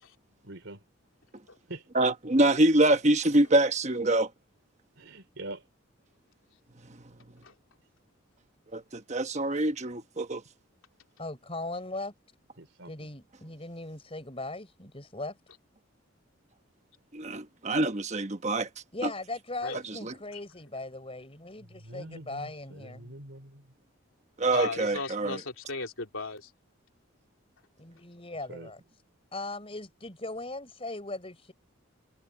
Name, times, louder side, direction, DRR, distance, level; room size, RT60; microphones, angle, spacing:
voice 1, 0.3-0.8 1.7-1.9 5.0-5.7 12.6-13.1 21.6-23.7 28.5-28.7, right 1 dB, 70° right, 3.5 m, -44 dB
voice 2, 1.9-4.3 8.7-10.4 17.1-18.7 19.0-19.1 20.0-20.1 24.4-25.4, right 1 dB, 35° right, 1.1 m, -25 dB
voice 3, 11.2-12.1 12.9-15.4 18.9-23.1 27.8-28.8 29.3-31.5, left 2 dB, 30° left, 5.8 m, -39 dB
voice 4, 24.5-26.5, left 3 dB, 85° left, 3.0 m, -36 dB
head